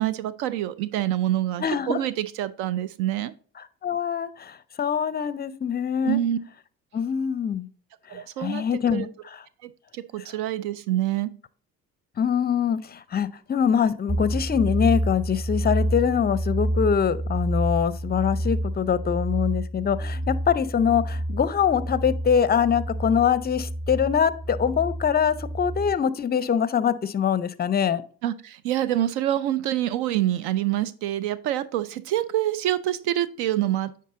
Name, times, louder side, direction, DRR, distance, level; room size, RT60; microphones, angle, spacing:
voice 1, 0.0-3.3 6.0-6.4 8.1-8.6 8.9-9.1 9.6-11.3 28.2-34.0, right 13 dB, 70° right, 16 dB, 0.5 m, -26 dB
voice 2, 1.6-2.0 3.6-6.2 6.9-7.7 8.1-9.4 12.2-28.0, left 7 dB, 25° left, 16 dB, 0.5 m, -24 dB
sound 1, 14.1-26.0, right 1 dB, 30° right, 1.8 m, -29 dB
9.3 x 3.8 x 3.7 m, 0.44 s
hypercardioid pair, 60°, 41 cm